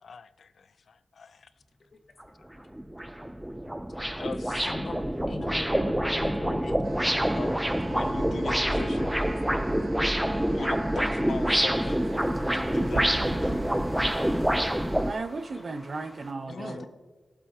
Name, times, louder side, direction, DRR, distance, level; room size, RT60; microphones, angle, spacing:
voice 1, 0.0-1.5 4.2-4.7 7.2-9.2 10.5-12.0 12.5-13.6 16.5-16.9, left 5 dB, 75° left, 0.4 m, -40 dB
sound 1, 1.4-16.3, left 1 dB, 10° left, 0.9 m, -52 dB
sound 2, 2.2-2.3 2.7-15.1, equal, 5° right, 0.4 m, -27 dB
voice 2, 4.6-5.0 5.3-6.8 16.5-16.9, left 3 dB, 60° left, 1.3 m, -38 dB
sound 3, 6.8-15.2, right 2 dB, 85° right, 1.2 m, -41 dB
voice 3, 15.0-16.9, right 3 dB, 55° right, 0.8 m, -35 dB
18.5 x 7.6 x 2.8 m
cardioid pair, 70°, 0 cm